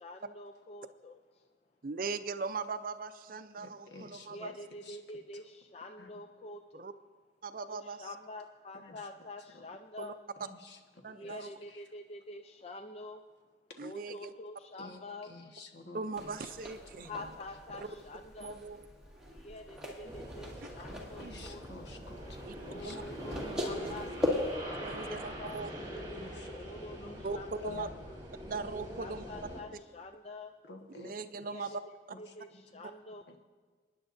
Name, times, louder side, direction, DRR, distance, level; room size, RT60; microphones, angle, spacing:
voice 1, 0.0-1.4 4.2-6.9 7.6-10.2 11.1-13.2 13.8-15.4 17.1-18.6 19.3-21.9 22.6-25.6 26.5-27.9 29.0-30.5 31.4-31.8 32.2-33.4, left 2 dB, 35° left, 5 dB, 0.4 m, -47 dB
voice 2, 1.8-4.5 6.7-6.9 7.4-8.1 10.0-10.1 11.0-11.5 13.8-14.3 15.9-17.1 17.8-17.9 18.4-18.8 19.8-19.9 20.6-20.7 21.2-21.4 22.4-22.6 22.8-23.0 23.8-23.9 24.8-25.7 27.2-27.4 27.6-27.9 28.5-29.2 31.0-31.7 32.8-32.9, right 4 dB, 50° right, 10 dB, 0.5 m, -40 dB
voice 3, 3.6-4.5 4.8-5.0 6.0-6.1 8.7-9.0 9.5-9.6 10.4-10.8 11.2-11.8 14.8-16.5 17.0-17.3 20.9-22.2 22.7-23.0 23.8-24.0 26.1-26.5 27.0-27.3 27.7-27.9 30.7-31.1 32.1-32.2 32.5-32.6 33.3-33.4, left 2 dB, 70° left, 3 dB, 1.4 m, -51 dB
sound 1, 16.2-24.5, left 2 dB, 5° right, 2.0 m, -40 dB
sound 2, 20.0-29.6, equal, 25° right, 3.2 m, -43 dB
29.0 x 10.0 x 2.6 m, 1.5 s
head